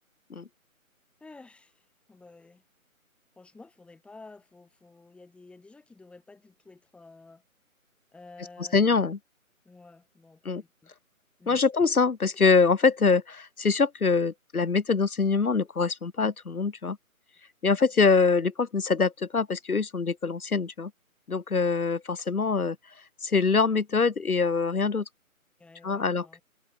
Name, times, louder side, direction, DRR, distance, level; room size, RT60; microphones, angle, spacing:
voice 1, 1.2-1.8 2.1-2.6 3.4-7.4 8.1-9.2 9.6-10.9 11.4-11.6 25.6-26.4, left 3 dB, 5° left, 4.4 m, -51 dB
voice 2, 8.7-9.2 10.5-10.6 11.5-17.0 17.6-20.9 21.3-22.8 23.2-25.1 25.8-26.4, left 4 dB, 90° left, 1.7 m, -24 dB
figure-of-eight pair, 160°, 42 cm